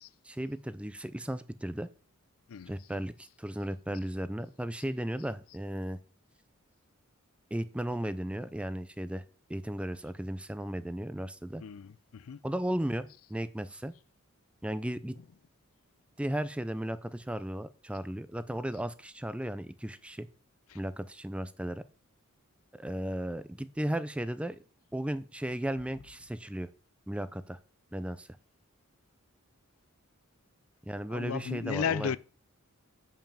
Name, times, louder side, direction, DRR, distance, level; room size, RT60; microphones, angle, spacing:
voice 1, 0.2-1.9 2.7-6.0 7.5-9.2 9.5-11.6 12.4-13.9 14.6-15.2 16.2-20.3 20.7-21.8 22.8-24.6 24.9-26.7 27.1-27.6 27.9-28.3 30.9-32.1, right 1 dB, 5° right, 0.4 m, -35 dB
voice 2, 11.6-12.4 20.7-20.8 31.1-32.2, left 7 dB, 75° left, 0.4 m, -34 dB
7.0 x 5.6 x 7.4 m
head